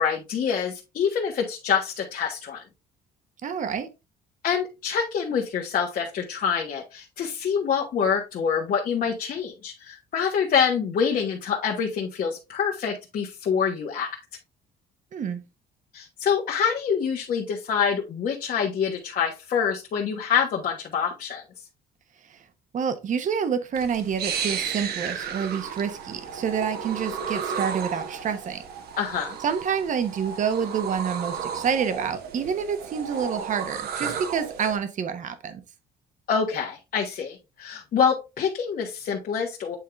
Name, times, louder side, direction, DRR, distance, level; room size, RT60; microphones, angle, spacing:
voice 1, 0.0-2.6 4.4-14.1 15.9-21.4 29.0-29.4 36.3-39.8, left 7 dB, 55° left, 1.4 m, -26 dB
voice 2, 3.4-3.9 15.1-15.4 22.3-22.4 22.7-28.6 29.4-35.6, right 7 dB, 50° right, 1.1 m, -28 dB
sound 1, 23.7-34.8, right 7 dB, 70° right, 1.2 m, -33 dB
8.5 x 3.6 x 3.4 m
cardioid pair, 110°, 17 cm